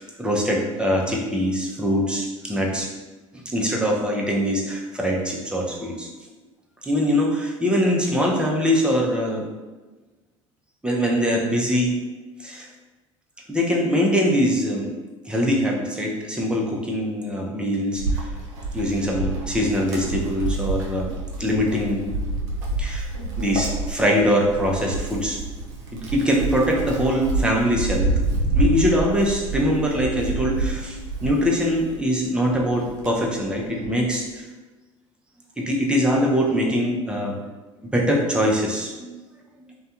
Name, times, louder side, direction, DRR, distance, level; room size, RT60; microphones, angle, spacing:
voice 1, 0.0-2.9 3.5-6.1 6.8-9.5 10.8-11.9 12.4-12.7 13.5-14.9 15.3-18.3 18.7-21.1 21.4-22.1 22.8-25.4 25.9-28.1 28.5-34.5 35.6-37.4 37.9-39.2, equal, 5° right, -2 dB, 0.6 m, -23 dB
Wind, 18.0-32.1 32.5-34.0, right 2 dB, 65° right, 0.6 m, -28 dB
2.6 x 2.3 x 2.4 m, 1.2 s
figure-of-eight pair, 65°, 16 cm